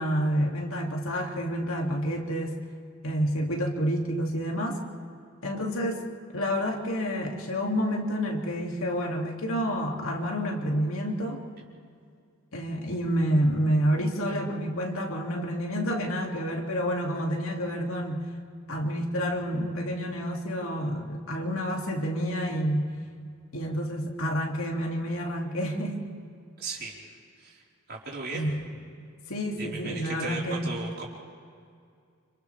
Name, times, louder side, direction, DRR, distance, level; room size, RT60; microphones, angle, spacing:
voice 1, 0.0-2.6 3.0-4.8 5.4-6.0 6.3-11.4 12.5-18.2 18.7-22.9 23.5-26.0 28.3-28.6 29.3-30.7, equal, 80° left, 0 dB, 2.7 m, -29 dB
voice 2, 26.6-26.9 27.4-27.6 27.9-28.5 29.6-31.0, right 4 dB, 50° right, -4 dB, 4.6 m, -36 dB
29.5 x 26.5 x 3.5 m, 2.3 s
head